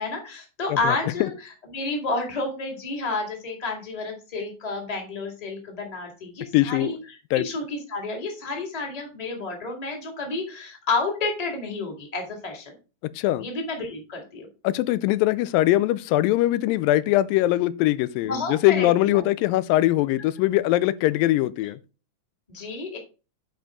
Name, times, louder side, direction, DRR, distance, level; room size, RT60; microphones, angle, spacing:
voice 1, 0.0-1.3 1.7-7.0 7.3-12.7 13.4-14.5 18.2-19.2 22.5-23.0, left 3 dB, 15° left, 1.6 m, -30 dB
voice 2, 0.7-1.3 6.5-7.0 7.3-7.5 13.2-13.5 14.6-21.8, left 16 dB, 90° left, 2.3 m, -22 dB
9.0 x 5.2 x 3.7 m
omnidirectional pair, 3.9 m